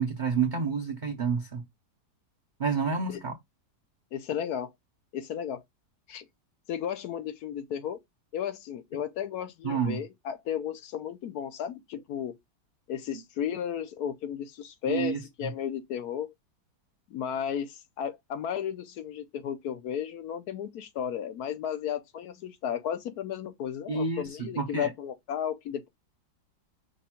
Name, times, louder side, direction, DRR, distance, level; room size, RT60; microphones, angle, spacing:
voice 1, 0.0-1.6 2.6-3.4 9.6-10.0 14.9-15.5 23.9-24.9, right 5 dB, 65° right, 0.4 m, -29 dB
voice 2, 4.1-4.7 5.1-5.6 6.1-6.3 6.7-8.0 8.3-12.3 12.9-16.3 17.1-25.9, left 9 dB, 70° left, 1.1 m, -34 dB
5.2 x 2.3 x 4.2 m
omnidirectional pair, 1.8 m